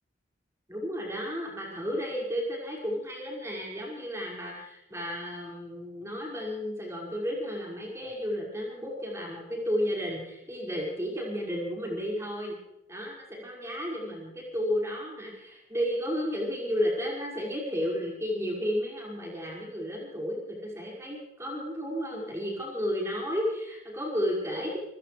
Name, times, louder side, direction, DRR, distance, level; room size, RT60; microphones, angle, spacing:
voice 1, 0.7-12.6 12.9-24.8, equal, 15° right, -3 dB, 5.6 m, -32 dB
27.5 x 15.5 x 3.3 m, 0.87 s
head